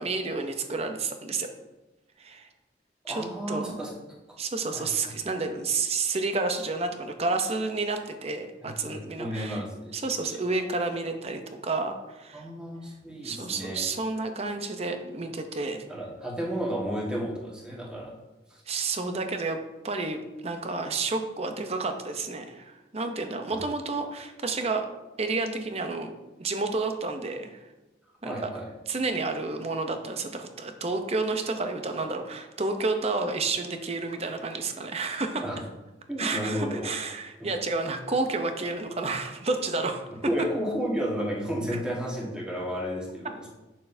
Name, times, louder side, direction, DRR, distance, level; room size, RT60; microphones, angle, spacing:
voice 1, 0.0-1.5 2.2-2.5 3.1-3.8 4.4-9.6 9.9-12.5 13.2-15.8 18.7-19.6 19.8-24.9 25.2-26.1 26.4-27.6 28.2-28.5 28.9-35.4 36.2-40.0, right 3 dB, 35° right, 6 dB, 0.7 m, -30 dB
voice 2, 3.0-3.9 4.3-4.4 4.7-4.9 8.6-9.9 10.3-10.4 12.3-13.8 15.9-18.1 23.5-23.6 28.2-28.6 35.4-35.6 36.1-36.9 40.2-43.5, equal, 5° right, -4 dB, 1.6 m, -32 dB
8.6 x 6.5 x 2.7 m, 1.1 s
head